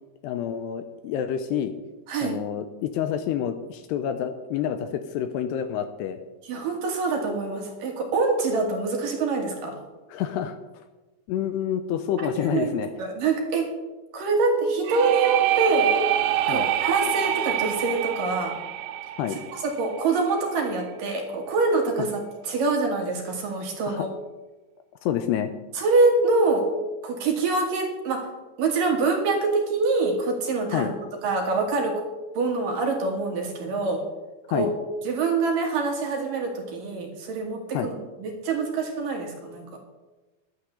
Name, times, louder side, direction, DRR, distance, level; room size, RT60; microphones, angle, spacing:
voice 1, 0.2-1.7 2.2-6.2 10.1-10.8 11.3-12.9 16.5-16.7 19.2-19.4 22.0-22.1 23.9-24.1 25.0-25.5 30.7-30.9 34.5-34.7 37.7-37.9, left 9 dB, 85° left, 9 dB, 2.6 m, -28 dB
voice 2, 2.1-2.4 6.4-9.8 12.2-12.7 13.0-13.8 14.1-15.9 16.5-18.6 19.3-24.1 25.7-26.7 27.0-28.3 28.6-30.9 31.2-32.0 32.3-34.0 34.5-34.7 35.0-39.6, right 3 dB, 60° right, 2 dB, 2.9 m, -25 dB
sound 1, 14.9-20.5, right 13 dB, 85° right, 3.1 m, -26 dB
11.5 x 9.7 x 6.9 m, 1.1 s
omnidirectional pair, 5.2 m